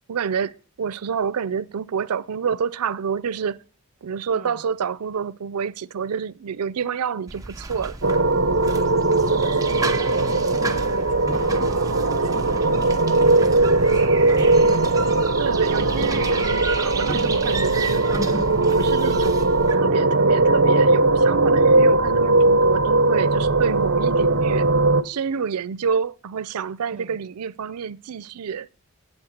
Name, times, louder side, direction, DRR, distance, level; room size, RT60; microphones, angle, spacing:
voice 1, 0.1-3.6 4.0-8.0 15.4-24.7 25.0-28.7, right 6 dB, 90° right, 0.5 m, -28 dB
voice 2, 4.3-4.6 8.7-14.7 15.0-15.1 26.9-27.2, right 2 dB, 35° right, 1.3 m, -39 dB
sound 1, 7.3-19.7, right 3 dB, 15° right, 0.7 m, -31 dB
sound 2, 8.0-25.0, right 2 dB, 60° right, 0.8 m, -19 dB
8.8 x 8.2 x 7.9 m
head